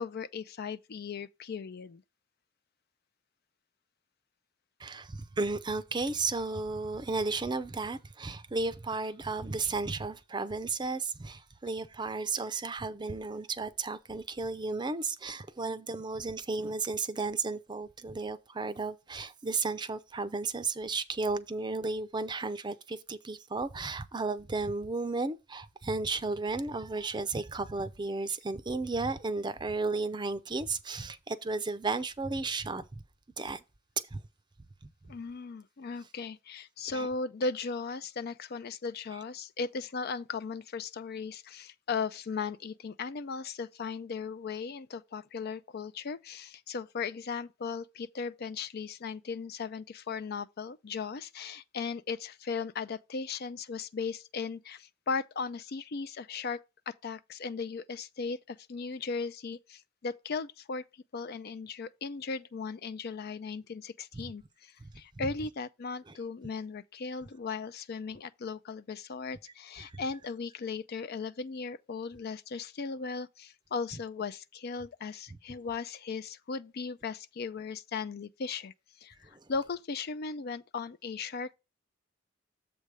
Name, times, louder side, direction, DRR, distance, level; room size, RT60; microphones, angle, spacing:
voice 1, 0.0-2.0 35.1-56.6 56.9-60.8 61.1-78.7 79.0-81.5, left 5 dB, 55° left, 0.5 m, -37 dB
voice 2, 4.8-33.0 33.4-33.6 34.1-34.2 36.9-37.1 64.1-64.2 64.8-64.9 65.2-65.3 69.8-70.0, right 3 dB, 25° right, 0.5 m, -34 dB
7.4 x 3.4 x 6.2 m
head